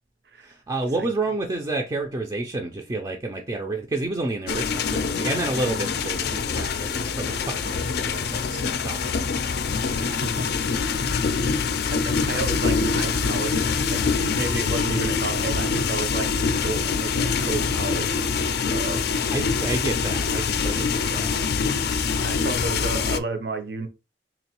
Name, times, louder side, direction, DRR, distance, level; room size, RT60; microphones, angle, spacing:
voice 1, 0.4-9.3 19.3-21.5, right 2 dB, 20° right, 0.4 m, -30 dB
sound 1, 4.5-23.2, left 5 dB, 60° left, 0.4 m, -25 dB
voice 2, 8.0-8.4 9.9-10.5 10.7-11.4 11.7-19.1 21.8-23.9, right 3 dB, 65° right, 0.7 m, -33 dB
3.8 x 2.9 x 2.9 m
head